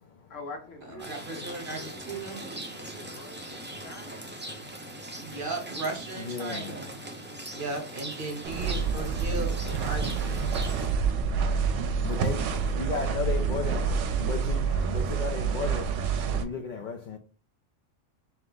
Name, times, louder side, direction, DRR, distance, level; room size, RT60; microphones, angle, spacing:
voice 1, 0.3-4.4 12.1-15.0, left 3 dB, 75° left, 1.3 m, -47 dB
Rain, 1.0-10.9, right 1 dB, 15° right, 0.3 m, -40 dB
voice 2, 1.0-2.4 5.2-6.9 7.5-10.6, right 3 dB, 50° right, 1.0 m, -36 dB
voice 3, 6.2-6.7 12.0-13.9 14.2-17.2, left 5 dB, 60° left, 0.5 m, -35 dB
sound 1, 8.4-16.5, right 5 dB, 75° right, 0.9 m, -28 dB
3.3 x 3.0 x 3.9 m
omnidirectional pair, 1.3 m